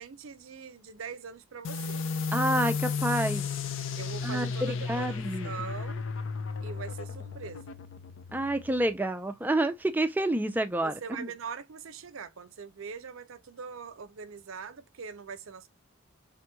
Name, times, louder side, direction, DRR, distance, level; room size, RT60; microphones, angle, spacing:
voice 1, 0.0-2.0 4.0-6.0 6.6-7.8 10.8-15.7, right 6 dB, 85° right, 0.5 m, -42 dB
sound 1, 1.6-8.9, left 5 dB, 70° left, 0.4 m, -34 dB
voice 2, 2.3-3.5 4.2-5.5 8.3-11.3, right 1 dB, 10° right, 0.3 m, -29 dB
3.4 x 2.9 x 2.2 m
head